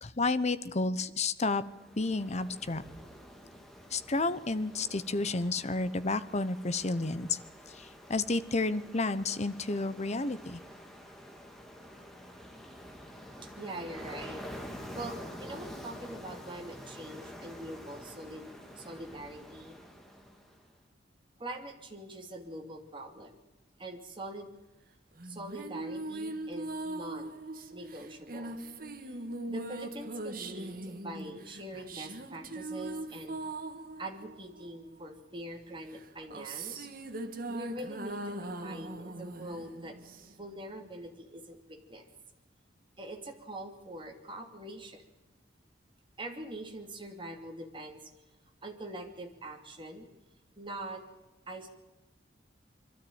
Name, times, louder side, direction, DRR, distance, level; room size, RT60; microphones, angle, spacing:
voice 1, 0.0-1.6 2.0-2.8 3.9-7.4 8.1-10.6, left 3 dB, 40° left, 14 dB, 0.9 m, -31 dB
Ocean, 1.6-20.7, equal, ahead, 2.4 m, -48 dB
voice 2, 13.6-14.4 14.9-19.8 21.4-23.4 23.8-24.5 25.2-27.4 27.7-28.6 29.1-29.2 29.5-33.3 34.0-36.9 37.5-40.0 40.4-42.0 43.0-45.0 46.2-48.1 48.6-50.1 50.6-51.0 51.5-51.7, right 1 dB, 30° right, 2 dB, 2.8 m, -43 dB
sound 1, 25.2-35.1 35.9-40.6, right 2 dB, 50° right, 1.6 m, -41 dB
24.0 x 13.0 x 8.9 m, 1.1 s
head